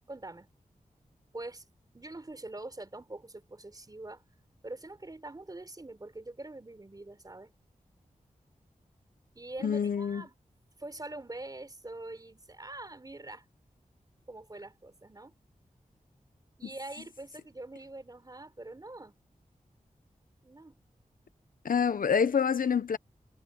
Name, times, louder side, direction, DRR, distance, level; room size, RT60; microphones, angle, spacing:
voice 1, 0.1-0.5 1.3-1.6 1.9-4.2 4.6-7.5 9.4-10.3 10.8-13.4 14.3-15.3 16.6-19.2 20.4-20.8, right 2 dB, 30° right, 4.1 m, -44 dB
voice 2, 9.6-10.2 16.6-16.7 21.6-23.0, left 6 dB, 85° left, 1.0 m, -27 dB
wide cardioid pair, 105°, 14 cm